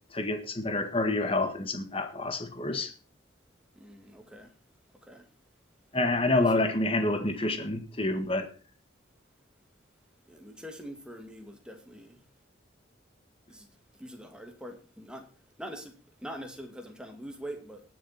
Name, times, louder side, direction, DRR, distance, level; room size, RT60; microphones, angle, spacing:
voice 1, 0.1-2.9 5.9-8.5, left 2 dB, 30° left, 1.6 m, -28 dB
voice 2, 3.8-4.5 5.0-5.3 6.5-6.6 10.3-12.2 13.5-13.7 14.0-15.3 15.6-17.8, equal, 5° right, 2.2 m, -43 dB
19.5 x 7.2 x 4.2 m
head